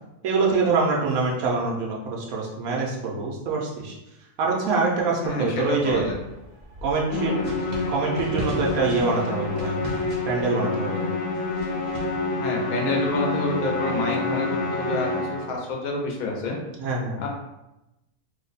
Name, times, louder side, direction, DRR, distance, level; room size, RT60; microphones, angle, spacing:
voice 1, 0.2-3.9 4.4-6.1 6.8-7.4 7.9-9.8 10.3-11.0 16.8-17.2, right 4 dB, 85° right, -2 dB, 1.1 m, -25 dB
voice 2, 5.2-6.2 12.4-16.6 17.2-17.3, left 2 dB, 85° left, 0 dB, 1.1 m, -28 dB
sound 1, 5.9-12.2, equal, 55° right, 0.5 m, -38 dB
Musical instrument, 7.1-15.6, left 2 dB, 60° left, 0.8 m, -27 dB
3.0 x 2.1 x 3.9 m, 0.94 s
omnidirectional pair, 1.4 m